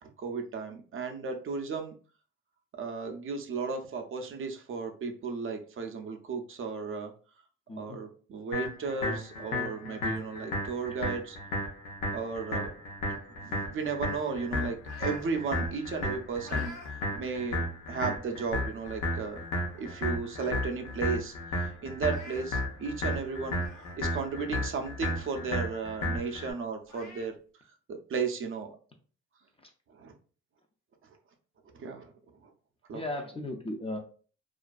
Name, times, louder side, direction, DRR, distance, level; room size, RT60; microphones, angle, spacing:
voice 1, 0.0-1.9 2.7-7.1 7.8-11.4 12.1-12.7 13.4-19.4 19.8-23.6 24.0-27.3 27.9-28.7 29.9-30.1 31.7-32.1 32.4-32.5 32.9-33.0, right 5 dB, 45° right, 4 dB, 0.5 m, -35 dB
sound 1, 8.5-26.5, left 1 dB, 85° left, 0.7 m, -34 dB
sound 2, 14.0-15.3 15.7-16.9 17.4-17.6 18.5-18.6 19.0-19.1 19.4-20.0 20.3-20.4 20.7-20.8 21.9-22.5 23.5-24.0 24.4-24.5 26.1-26.2 26.8-27.3, left 1 dB, 60° left, 0.9 m, -49 dB
voice 2, 32.9-34.0, left 1 dB, 20° left, 3 dB, 0.4 m, -36 dB
2.5 x 2.2 x 2.3 m, 0.40 s
cardioid pair, 90°, 30 cm